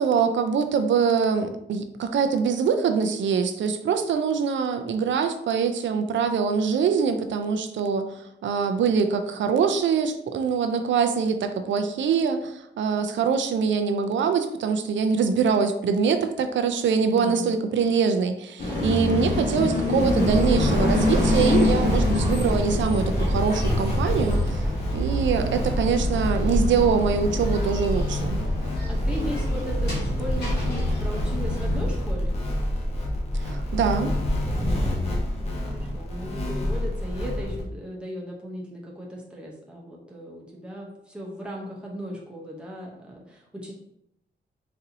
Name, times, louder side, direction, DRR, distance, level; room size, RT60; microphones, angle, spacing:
voice 1, 0.0-24.7 24.9-28.4 33.4-34.1, right 6 dB, 85° right, 7 dB, 0.4 m, -24 dB
voice 2, 17.0-17.6 28.9-32.4 34.8-43.7, equal, 5° right, -3 dB, 0.7 m, -37 dB
sound 1, 18.6-31.8, left 2 dB, 60° left, 1.3 m, -28 dB
sound 2, 20.0-37.6, left 1 dB, 35° left, 0.7 m, -26 dB
4.1 x 2.7 x 2.7 m, 0.79 s
wide cardioid pair, 165°, 19 cm